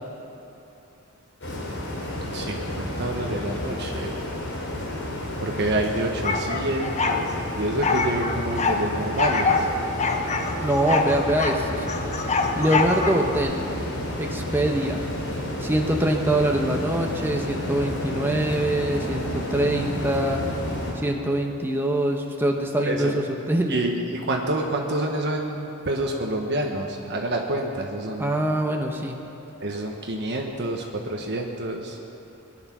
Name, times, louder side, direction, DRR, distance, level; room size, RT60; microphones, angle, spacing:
sound 1, 1.4-20.9, left 1 dB, 65° left, 4.5 m, -31 dB
voice 1, 2.3-4.1 5.4-9.7 22.8-23.2 23.7-28.3 29.6-32.0, right 1 dB, 55° right, 1 dB, 1.2 m, -28 dB
sound 2, 6.2-7.2 7.8-8.8 9.2-9.7 10.0-11.6 11.9-13.4, left 4 dB, 35° left, 1.1 m, -24 dB
voice 2, 10.6-11.9 12.6-13.6 14.2-15.0 15.6-20.4 20.9-23.8 28.2-29.2, right 1 dB, 10° right, 1 dB, 1.0 m, -24 dB
21.5 x 11.0 x 6.1 m, 2.9 s
head